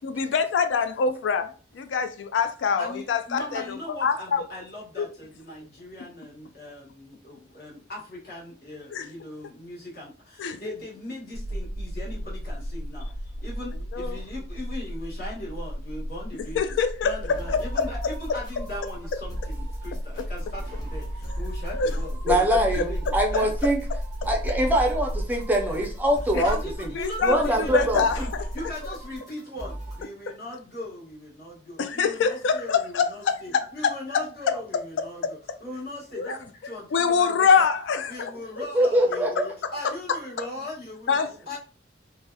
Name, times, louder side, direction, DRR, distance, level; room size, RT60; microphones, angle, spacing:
voice 1, 0.0-3.6 4.0-4.4 5.0-5.1 8.9-9.0 10.4-10.6 13.9-14.1 16.6-17.1 17.5-17.6 21.7-21.9 22.3-22.6 26.3-26.4 27.0-28.4 31.8-33.3 36.2-36.3 36.9-38.3 41.1-41.3, left 5 dB, 90° left, 0.3 m, -24 dB
voice 2, 2.8-16.7 17.0-23.6 25.7-25.8 26.2-37.7 38.1-41.1 41.5-41.6, left 1 dB, 55° left, 1.2 m, -39 dB
sound 1, 11.3-29.2, equal, 80° right, 0.4 m, -34 dB
sound 2, 17.3-30.0, right 1 dB, 20° left, 0.7 m, -39 dB
voice 3, 22.2-23.8 24.2-26.9 27.2-28.0 38.7-39.5, right 1 dB, 10° right, 0.4 m, -23 dB
2.7 x 2.1 x 2.2 m
head